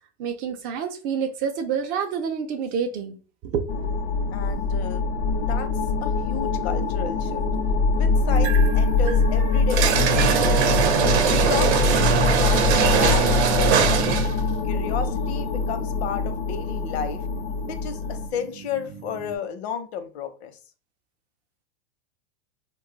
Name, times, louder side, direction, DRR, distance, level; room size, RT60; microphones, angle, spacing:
voice 1, 0.2-3.2 3.4-3.9, right 7 dB, 30° right, 0.3 m, -28 dB
sound 1, 3.7-18.3, left 4 dB, 40° left, 0.4 m, -23 dB
voice 2, 4.3-5.0 5.5-5.7 6.0-7.4 8.0-10.8 11.2-14.2 14.6-17.2 17.6-20.6, left 7 dB, 70° left, 0.8 m, -33 dB
sound 2, 8.3-19.4, right 9 dB, 50° right, 0.7 m, -40 dB
sound 3, 9.7-14.4, right 7 dB, 85° right, 0.7 m, -21 dB
2.6 x 2.3 x 3.8 m
supercardioid pair, 140°, 33 cm